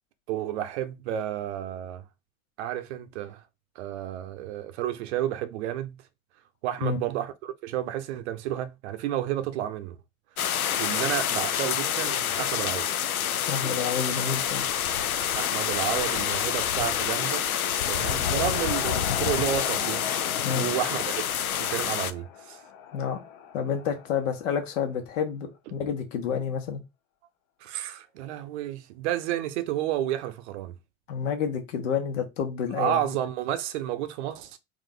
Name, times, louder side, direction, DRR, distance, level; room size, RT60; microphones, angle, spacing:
voice 1, 0.3-2.0 2.6-3.4 3.8-6.0 6.6-10.0 10.8-12.9 15.3-17.5 17.9-21.3 21.6-22.6 27.6-30.8 32.7-34.6, right 11 dB, 50° right, 0.7 m, -31 dB
sound 1, 10.4-22.1, left 9 dB, 85° left, 0.5 m, -27 dB
voice 2, 13.5-14.7 20.4-20.7 22.9-23.2 23.5-26.8 31.1-33.0, left 7 dB, 60° left, 1.3 m, -29 dB
sound 2, 17.1-24.8, left 8 dB, 40° left, 0.8 m, -39 dB
3.8 x 2.5 x 3.8 m
figure-of-eight pair, 90°, 42 cm